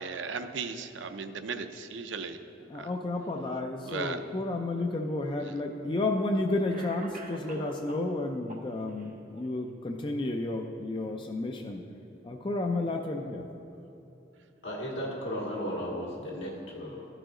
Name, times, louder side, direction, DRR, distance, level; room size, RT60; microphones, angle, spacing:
voice 1, 0.0-2.4 2.8-2.9 3.9-4.2, right 5 dB, 80° right, 8 dB, 0.5 m, -36 dB
voice 2, 2.7-11.8 12.2-13.4, left 2 dB, 25° left, 3 dB, 0.4 m, -31 dB
Cough, 5.0-5.1 6.1-6.2 6.7-8.1 8.5-9.1, right 2 dB, 45° right, 0.9 m, -45 dB
voice 3, 14.6-17.1, equal, 75° left, -4 dB, 1.8 m, -35 dB
13.5 x 4.9 x 3.7 m, 3.0 s
head